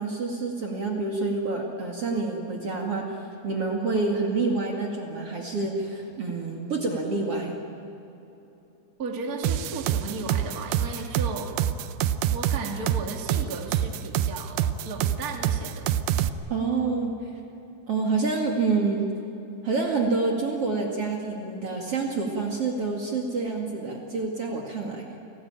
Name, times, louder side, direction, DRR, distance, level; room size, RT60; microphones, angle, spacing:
voice 1, 0.0-3.2 3.4-7.6 16.5-17.1 17.9-19.1 19.6-25.1, right 3 dB, 45° right, 0 dB, 2.8 m, -27 dB
voice 2, 9.0-11.5 12.3-15.9, right 3 dB, 30° right, 1 dB, 2.5 m, -35 dB
sound 1, 9.4-16.3, right 11 dB, 85° right, 2.6 m, -25 dB
30.0 x 19.0 x 8.9 m, 3.0 s
omnidirectional pair, 4.2 m